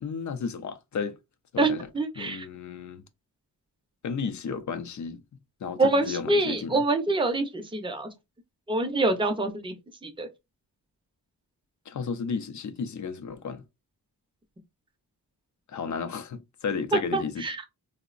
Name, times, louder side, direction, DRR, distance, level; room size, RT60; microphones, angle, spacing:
voice 1, 0.0-1.2 1.5-1.9 2.2-3.0 4.0-5.2 5.6-6.8 11.9-13.6 15.7-17.5, left 5 dB, 50° left, 0.5 m, -33 dB
voice 2, 1.6-2.5 5.8-8.1 8.7-9.8 10.0-10.3 16.9-17.6, right 2 dB, 15° right, 0.5 m, -26 dB
3.5 x 2.0 x 2.4 m
wide cardioid pair, 100°, 39 cm